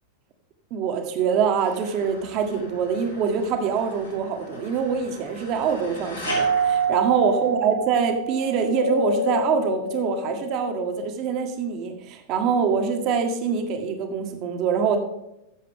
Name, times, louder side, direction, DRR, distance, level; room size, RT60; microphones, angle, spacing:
voice 1, 0.7-15.0, right 6 dB, 40° right, 4 dB, 1.8 m, -24 dB
sound 1, 1.6-7.9, left 2 dB, 80° left, 4.1 m, -39 dB
Doorbell, 6.3-11.1, right 3 dB, 85° right, 0.8 m, -26 dB
15.5 x 7.5 x 3.7 m, 0.86 s
figure-of-eight pair, 90°, 0 cm